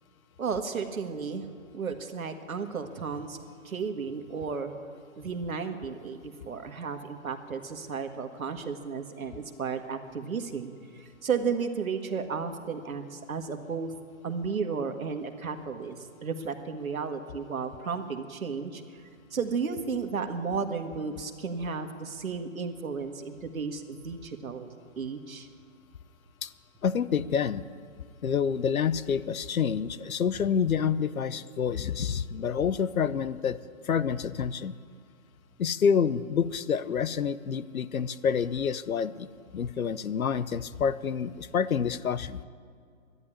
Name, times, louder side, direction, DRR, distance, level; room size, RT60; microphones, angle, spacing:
voice 1, 0.4-1.5 1.7-3.4 3.6-4.7 5.2-13.9 14.2-19.0 19.3-24.7 25.0-25.5, right 5 dB, 85° right, 6 dB, 1.8 m, -33 dB
voice 2, 26.8-27.6 28.2-33.6 33.8-34.8 35.6-39.3 39.5-42.4, left 7 dB, 90° left, 16 dB, 0.8 m, -28 dB
13.0 x 11.0 x 9.9 m, 2.3 s
hypercardioid pair, 160°, 41 cm